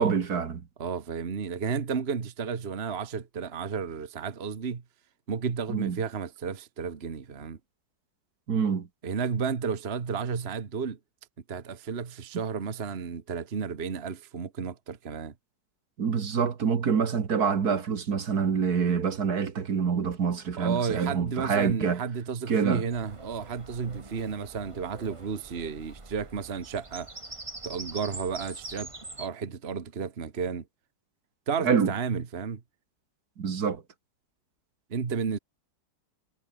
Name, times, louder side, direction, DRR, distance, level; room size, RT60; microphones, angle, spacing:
voice 1, 0.0-0.6 5.7-6.0 8.5-8.9 16.0-22.0 22.5-22.8 31.6-31.9 33.4-33.8, right 6 dB, 60° right, 2.2 m, -26 dB
voice 2, 0.8-4.8 5.3-7.6 9.0-11.0 11.5-15.3 20.6-27.1 27.6-28.9 29.2-30.7 31.5-32.6 34.9-35.4, right 6 dB, 40° right, 1.6 m, -32 dB
Bird vocalization bird call bird song, 22.9-29.3, right 2 dB, 20° right, 1.8 m, -44 dB
omnidirectional pair, 1.9 m